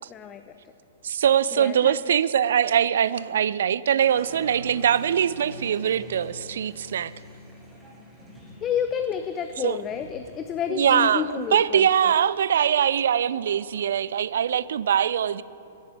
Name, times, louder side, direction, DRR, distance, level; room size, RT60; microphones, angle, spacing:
voice 1, 0.1-0.4 1.6-2.0 8.6-12.1, left 8 dB, 25° left, 0.4 m, -30 dB
voice 2, 1.0-7.1 9.6-9.8 10.7-15.4, right 9 dB, 65° right, 0.3 m, -22 dB
Applause, 4.1-12.5, equal, ahead, 2.4 m, -46 dB
11.0 x 6.5 x 9.1 m
figure-of-eight pair, 110°, 0 cm